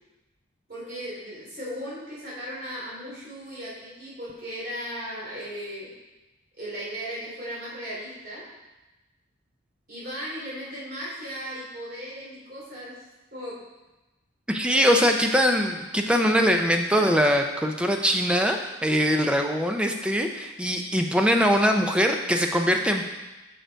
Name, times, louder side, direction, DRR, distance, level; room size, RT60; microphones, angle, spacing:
voice 1, 0.7-5.9 6.6-8.4 9.9-13.0 13.3-13.6 14.7-15.0 16.2-16.3 16.9-17.2, equal, 45° right, -7 dB, 3.0 m, -36 dB
voice 2, 14.5-23.1, equal, 5° right, 4 dB, 0.5 m, -22 dB
6.7 x 6.4 x 4.5 m, 1.1 s
head